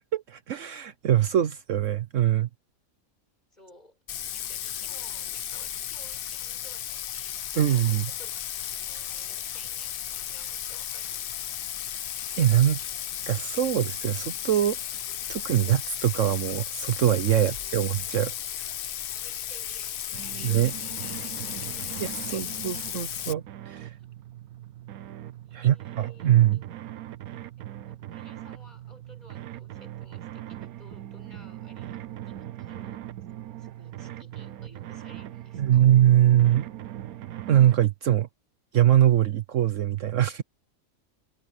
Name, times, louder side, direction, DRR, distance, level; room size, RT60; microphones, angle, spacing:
voice 1, 0.1-2.5 7.6-8.1 12.4-12.8 13.3-14.8 15.3-18.3 20.4-20.7 22.0-23.9 25.5-26.6 35.6-36.7 37.5-38.3 38.7-40.4, right 11 dB, 65° right, 1.1 m, -23 dB
voice 2, 3.5-4.0 4.3-11.4 12.8-12.9 17.3-17.8 19.1-22.6 24.0-24.1 25.4-26.7 27.6-33.1 33.6-35.8, left 1 dB, 30° left, 7.8 m, -56 dB
Bathtub (filling or washing), 4.1-23.3, left 10 dB, 60° left, 0.6 m, -35 dB
sound 1, 20.1-37.8, right 13 dB, 90° right, 1.2 m, -40 dB
omnidirectional pair, 1.5 m